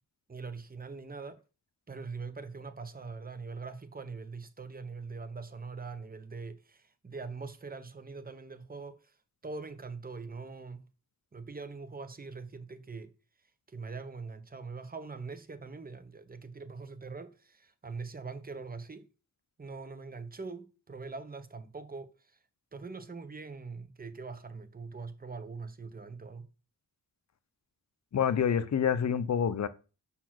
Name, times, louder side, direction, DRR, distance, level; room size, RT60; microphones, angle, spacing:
voice 1, 0.3-1.4 1.9-9.1 9.4-10.9 11.3-13.1 13.7-19.1 19.6-22.1 22.7-26.4, right 4 dB, 25° right, 0.8 m, -42 dB
voice 2, 28.1-29.7, left 8 dB, 50° left, 0.6 m, -27 dB
5.7 x 4.3 x 6.0 m
wide cardioid pair, 120°, 37 cm